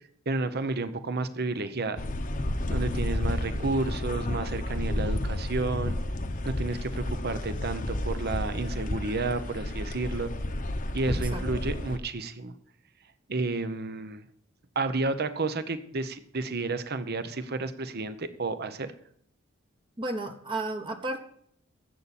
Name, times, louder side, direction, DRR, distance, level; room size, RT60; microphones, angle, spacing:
voice 1, 0.3-2.0 2.7-6.0 6.5-10.3 10.9-12.5 13.3-14.2 14.7-18.9, right 3 dB, 50° right, 11 dB, 0.9 m, -31 dB
sound 1, 2.0-12.0, left 1 dB, 40° left, 1.0 m, -31 dB
voice 2, 20.0-21.2, right 2 dB, 25° right, 5 dB, 1.0 m, -32 dB
14.0 x 8.4 x 4.3 m, 0.66 s
head